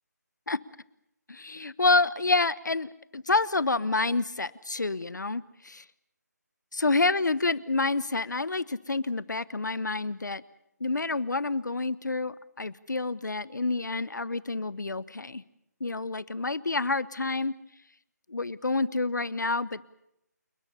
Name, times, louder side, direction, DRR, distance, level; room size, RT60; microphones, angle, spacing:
voice 1, 1.3-5.8 6.7-10.4 10.8-15.4 15.8-17.5 18.3-19.8, left 3 dB, 85° left, 19 dB, 1.1 m, -28 dB
29.0 x 20.0 x 7.0 m, 0.80 s
figure-of-eight pair, 165°, 10 cm